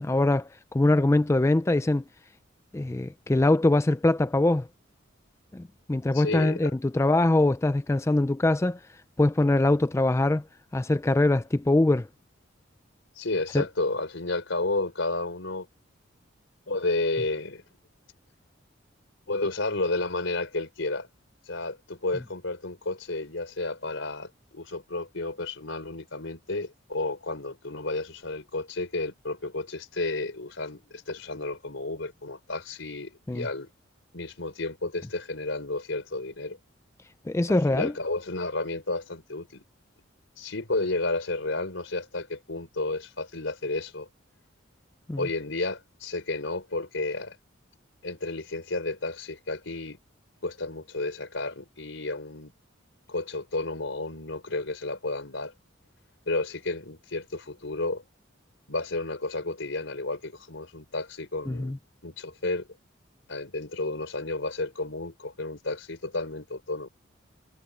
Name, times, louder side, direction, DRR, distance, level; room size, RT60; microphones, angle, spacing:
voice 1, 0.0-2.0 2.7-4.7 5.5-8.8 9.2-10.4 10.7-12.1 13.5-13.7 33.3-33.5 37.3-37.9 45.1-45.3 61.5-61.8, left 2 dB, 15° left, 0.4 m, -23 dB
voice 2, 6.1-6.7 13.2-15.7 16.7-17.6 19.3-21.1 21.5-33.7 34.1-36.6 37.5-39.6 40.4-44.1 45.2-47.4 48.0-50.0 50.4-52.5 53.1-55.5 56.3-58.0 58.7-61.7 62.0-62.7 63.3-66.9, left 2 dB, 75° left, 4.0 m, -32 dB
head